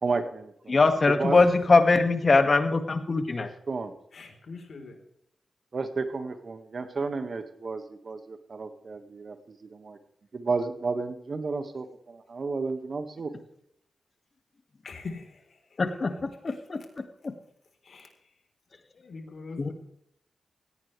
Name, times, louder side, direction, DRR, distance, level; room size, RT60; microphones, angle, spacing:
voice 1, 0.0-0.8 1.1-1.4 3.7-3.9 5.7-10.0 10.3-13.3, right 4 dB, 55° right, 8 dB, 1.8 m, -32 dB
voice 2, 0.7-3.5 15.8-16.3 16.7-16.8 19.6-19.7, left 3 dB, 50° left, 7 dB, 2.1 m, -21 dB
voice 3, 4.1-5.0 14.8-15.6 16.5-16.6 17.8-18.1 18.9-19.7, left 4 dB, 70° left, 4 dB, 4.1 m, -42 dB
17.5 x 16.5 x 3.4 m, 0.73 s
cardioid pair, 45°, 0 cm